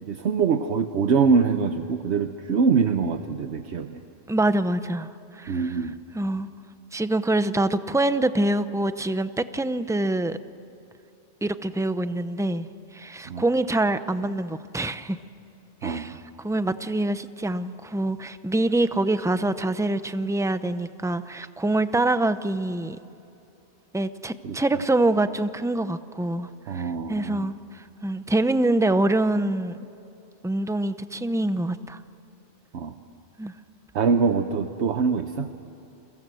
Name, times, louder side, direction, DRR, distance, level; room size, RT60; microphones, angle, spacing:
voice 1, 0.0-4.0 5.5-5.9 13.3-13.4 15.8-16.2 24.4-24.6 26.7-27.5 32.7-32.9 33.9-35.6, right 5 dB, 70° right, 8 dB, 1.1 m, -24 dB
voice 2, 4.3-5.1 5.3-5.8 6.1-6.5 6.9-10.4 11.4-12.7 12.9-15.2 15.8-23.0 23.9-29.9 30.4-32.0 33.4-33.5, right 2 dB, 5° right, 12 dB, 0.4 m, -25 dB
30.0 x 23.0 x 7.7 m, 2.7 s
omnidirectional pair, 1.2 m